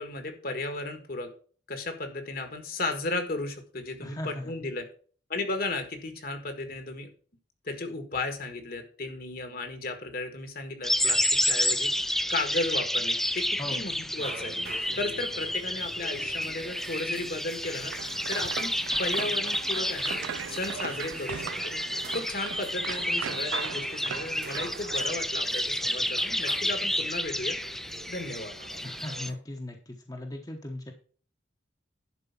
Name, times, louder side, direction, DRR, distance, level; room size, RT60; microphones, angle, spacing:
voice 1, 0.0-1.3 1.7-4.9 5.3-7.1 7.6-14.5 14.9-18.7 19.0-20.2 20.5-21.7 22.1-27.6 28.1-28.5, left 2 dB, 50° left, 7 dB, 1.6 m, -35 dB
voice 2, 4.0-4.5 13.6-13.8 28.8-30.9, left 1 dB, 20° left, 2 dB, 1.1 m, -38 dB
sound 1, 10.8-29.3, left 1 dB, ahead, 0.3 m, -30 dB
sound 2, 14.2-29.4, right 3 dB, 60° right, 1.3 m, -47 dB
sound 3, 17.6-25.2, right 8 dB, 85° right, 0.4 m, -39 dB
11.0 x 4.6 x 5.9 m, 0.43 s
head